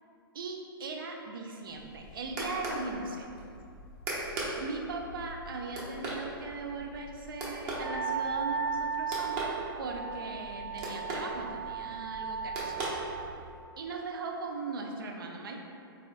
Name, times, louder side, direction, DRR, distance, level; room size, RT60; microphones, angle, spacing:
voice 1, 0.3-3.3 4.6-13.0 13.8-15.6, right 3 dB, 65° right, 2 dB, 0.4 m, -39 dB
sound 1, 1.7-13.6, right 1 dB, 35° right, 0.8 m, -40 dB
Wind instrument woodwind instrument, 7.7-13.3, right 6 dB, 10° left, 0.6 m, -36 dB
4.0 x 3.0 x 2.3 m, 2.5 s
figure-of-eight pair, 105°, 12 cm